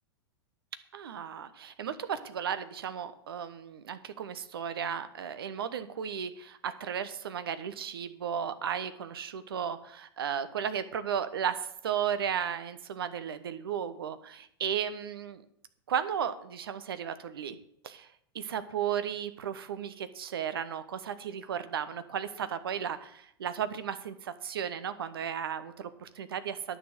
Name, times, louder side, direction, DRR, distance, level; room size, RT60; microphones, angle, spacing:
voice 1, 0.9-14.2 14.6-15.4 15.9-17.6 17.8-18.1 18.3-26.8, right 8 dB, 65° right, 12 dB, 1.1 m, -34 dB
10.0 x 6.6 x 7.9 m, 0.70 s
figure-of-eight pair, 95°, 13 cm